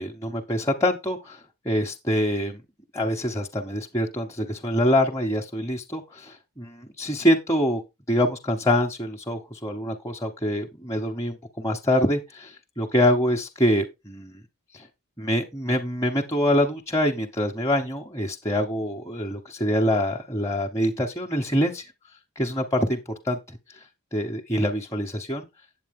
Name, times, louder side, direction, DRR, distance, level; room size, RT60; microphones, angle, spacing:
voice 1, 0.0-1.4 1.6-2.6 2.9-7.8 8.1-14.3 14.7-14.9 15.2-21.9 22.4-23.0 23.2-23.6 24.1-25.5, left 1 dB, 15° left, 0.8 m, -25 dB
8.5 x 8.2 x 3.6 m
head